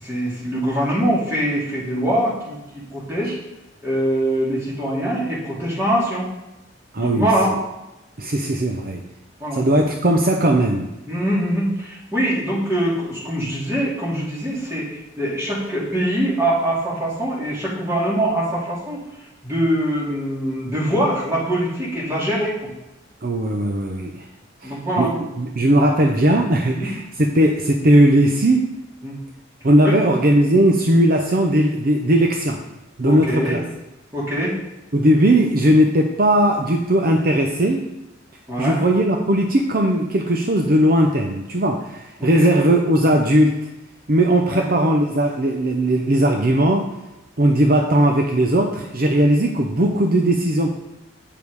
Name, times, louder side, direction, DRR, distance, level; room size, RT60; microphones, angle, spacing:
voice 1, 0.0-3.4 3.8-6.3 7.0-7.5 9.4-9.6 11.1-19.0 19.4-22.7 24.6-25.1 26.7-26.9 29.0-29.2 29.8-30.0 33.0-33.6 34.1-34.5 38.5-38.8 42.2-42.5 44.5-44.7, right 1 dB, 15° right, -7 dB, 2.7 m, -23 dB
voice 2, 6.9-7.3 8.2-9.0 9.5-10.9 23.2-24.2 24.6-28.7 29.6-32.6 33.0-33.6 34.9-37.8 38.6-43.7 44.1-46.9 47.4-50.7, right 1 dB, 45° right, 2 dB, 0.6 m, -18 dB
8.7 x 5.2 x 4.8 m, 0.97 s
head